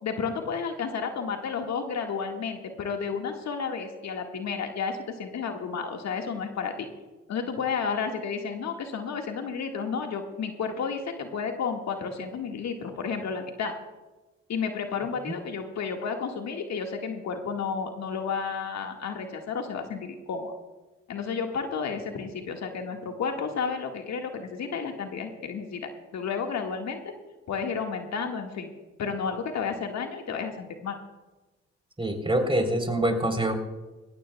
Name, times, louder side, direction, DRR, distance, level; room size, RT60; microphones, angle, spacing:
voice 1, 0.0-6.9 7.3-13.7 14.5-20.5 21.1-27.0 27.5-28.7 29.0-31.0, left 5 dB, 60° left, 3 dB, 1.8 m, -32 dB
voice 2, 32.0-33.6, right 1 dB, 15° right, 5 dB, 3.6 m, -25 dB
21.0 x 18.0 x 2.3 m, 1.2 s
hypercardioid pair, 50°, 30 cm